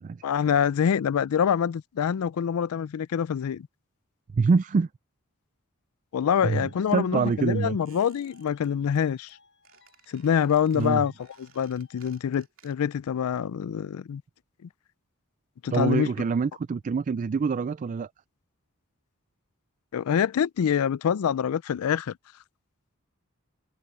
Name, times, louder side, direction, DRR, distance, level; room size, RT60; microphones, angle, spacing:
voice 1, 0.2-3.7 6.1-9.3 10.1-11.1 11.6-14.2 15.6-16.1 19.9-22.1, left 8 dB, 80° left, 0.4 m, -25 dB
voice 2, 4.3-4.9 6.4-7.8 10.7-11.0 15.7-18.1, right 5 dB, 35° right, 0.3 m, -25 dB
sound 1, 6.4-12.2, left 4 dB, 60° left, 6.8 m, -60 dB
Squeak, 7.8-8.7 8.9-9.3 9.6-13.0 13.3-13.4, right 9 dB, 65° right, 2.7 m, -59 dB
head